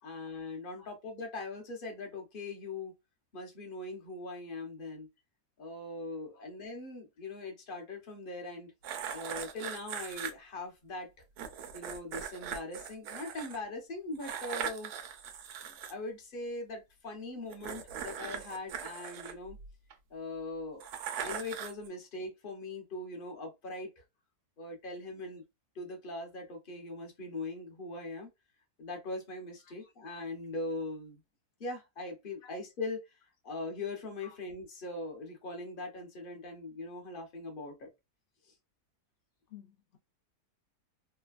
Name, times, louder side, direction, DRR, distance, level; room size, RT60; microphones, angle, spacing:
voice 1, 0.0-2.9 3.3-5.1 5.6-8.7 9.1-11.1 11.7-14.9 15.6-19.6 20.1-20.9 21.2-24.0 24.6-25.4 25.7-28.3 28.8-31.2 31.6-33.2 33.4-37.9 38.4-38.5, left 2 dB, 40° left, 0.8 m, -41 dB
sound 1, 8.8-10.3 11.4-13.6 14.2-15.9 17.5-19.9 20.8-21.9, right 8 dB, 75° right, 1.1 m, -40 dB
voice 2, 39.5-40.0, left 10 dB, 75° left, 0.5 m, -55 dB
3.1 x 2.2 x 2.3 m
omnidirectional pair, 1.7 m